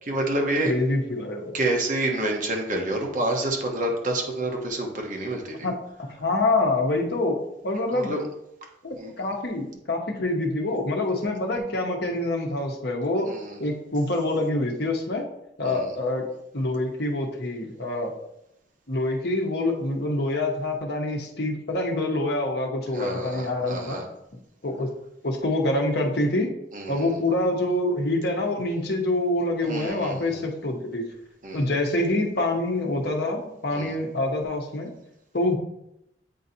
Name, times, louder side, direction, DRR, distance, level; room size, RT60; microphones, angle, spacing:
voice 1, 0.0-0.7 1.5-5.7 7.9-8.2 8.9-9.1 13.3-13.6 15.6-15.9 22.9-24.0 26.7-27.2 29.6-30.4 31.4-31.7 33.7-33.9, right 1 dB, 45° right, 0 dB, 1.1 m, -28 dB
voice 2, 0.6-1.5 5.6-5.7 6.0-7.4 7.6-8.1 8.8-13.3 13.6-15.2 15.6-16.2 16.5-18.1 18.9-24.0 24.6-24.9 25.2-26.5 26.9-31.0 31.5-34.9 35.3-35.6, left 2 dB, 60° left, 1 dB, 1.1 m, -26 dB
8.5 x 4.0 x 2.8 m, 0.82 s
head